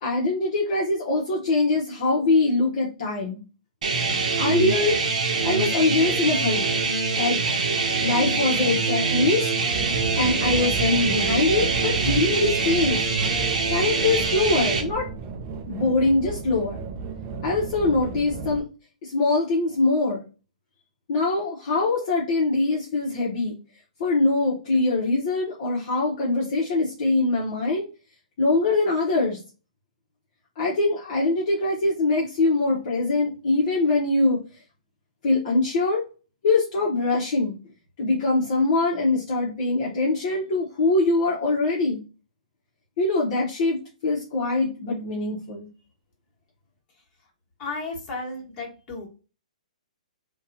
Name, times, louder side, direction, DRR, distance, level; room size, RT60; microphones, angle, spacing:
voice 1, 0.0-3.4 4.4-5.0 5.4-6.7 7.2-7.4 8.0-9.5 10.2-13.0 13.7-15.1 15.7-16.8 17.4-18.6 19.0-20.2 21.1-23.6 24.0-27.9 28.4-29.4 30.6-34.4 35.2-36.1 36.4-37.5 38.0-42.0 43.0-43.8 44.0-45.7, left 3 dB, 45° left, -4 dB, 0.9 m, -23 dB
sound 1, 3.8-14.8, right 4 dB, 65° right, 0.8 m, -24 dB
sound 2, 9.7-18.6, right 4 dB, 30° right, 0.4 m, -33 dB
voice 2, 47.6-49.1, left 3 dB, 30° left, -2 dB, 1.3 m, -33 dB
2.6 x 2.3 x 2.7 m, 0.33 s
hypercardioid pair, 135°, 4 cm